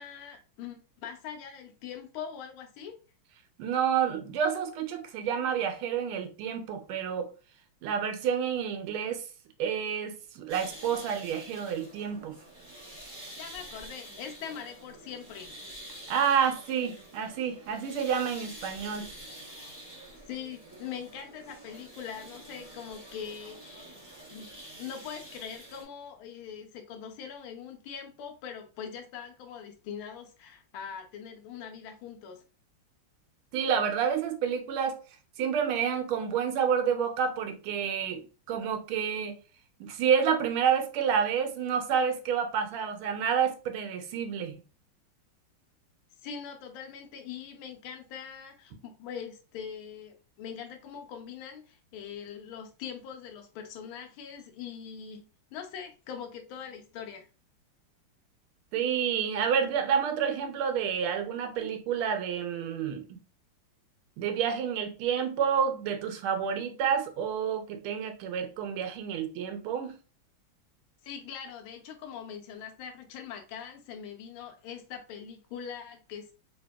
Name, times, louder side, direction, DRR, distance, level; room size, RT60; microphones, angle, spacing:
voice 1, 0.0-2.9 13.3-15.6 20.3-23.8 24.3-32.4 46.2-57.3 71.0-76.3, left 7 dB, 80° left, 1.4 m, -42 dB
voice 2, 3.6-7.3 7.8-9.2 9.6-12.4 16.1-19.1 33.5-35.0 35.4-39.4 39.8-44.6 58.7-63.2 64.2-69.9, right 7 dB, 85° right, 1.5 m, -29 dB
sound 1, 10.5-25.8, right 1 dB, 25° right, 0.4 m, -47 dB
3.3 x 2.8 x 2.2 m
omnidirectional pair, 2.3 m